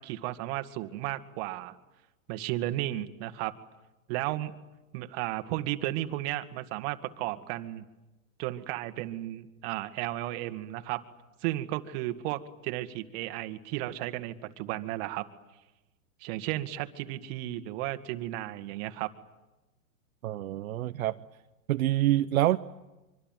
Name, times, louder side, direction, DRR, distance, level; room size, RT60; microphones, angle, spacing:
voice 1, 0.0-1.8 2.3-3.5 4.1-4.5 4.9-7.8 8.4-11.0 11.4-15.3 16.2-19.1, right 15 dB, 45° right, 9 dB, 1.9 m, -34 dB
voice 2, 20.2-21.2 21.7-22.6, right 14 dB, 75° right, 9 dB, 0.9 m, -26 dB
25.0 x 25.0 x 9.2 m, 1.0 s
hypercardioid pair, 135°, 42 cm